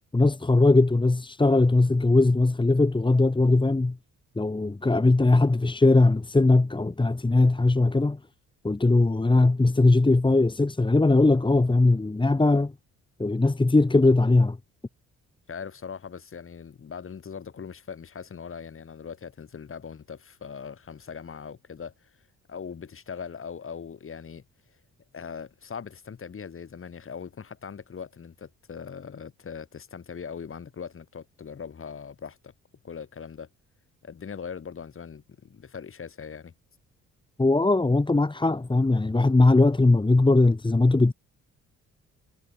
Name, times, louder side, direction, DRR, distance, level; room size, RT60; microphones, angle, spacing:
voice 1, 0.1-4.0 4.4-8.2 8.6-12.7 13.2-14.6 37.4-41.1, left 2 dB, 15° left, 2.8 m, -20 dB
voice 2, 15.5-21.9 22.5-24.4 25.1-32.5 32.8-33.5 34.0-36.5, left 6 dB, 45° left, 7.5 m, -40 dB
cardioid pair, 90°, 30 cm